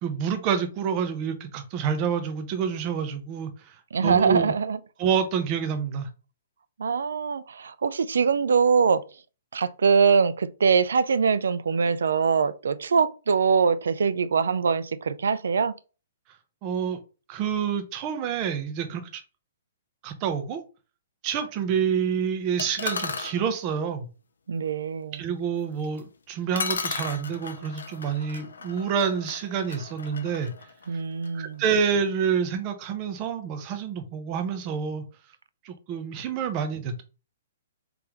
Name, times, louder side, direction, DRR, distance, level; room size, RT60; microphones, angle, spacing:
voice 1, 0.0-4.5 5.0-6.1 16.6-17.0 17.3-19.2 20.0-20.6 21.2-24.1 25.1-30.5 31.3-35.0 35.6-37.0, right 7 dB, 35° right, 0.7 m, -28 dB
voice 2, 3.9-4.8 6.8-9.0 9.5-15.7 24.5-25.2 30.9-31.6, right 5 dB, 80° right, 0.4 m, -23 dB
sound 1, 22.6-23.4 26.0-26.1 26.6-31.4, left 4 dB, 85° left, 0.5 m, -35 dB
3.4 x 3.4 x 3.0 m
hypercardioid pair, 135°, 0 cm